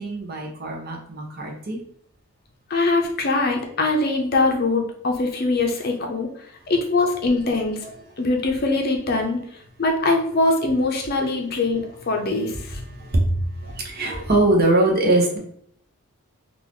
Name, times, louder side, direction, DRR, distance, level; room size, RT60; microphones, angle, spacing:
voice 1, 0.0-1.8 7.8-7.9 12.7-15.4, right 2 dB, 45° right, 0 dB, 0.8 m, -22 dB
voice 2, 2.7-6.3 6.7-7.8 8.2-9.4 9.8-12.8, left 2 dB, 45° left, 2 dB, 0.7 m, -22 dB
3.9 x 2.5 x 3.1 m, 0.65 s
head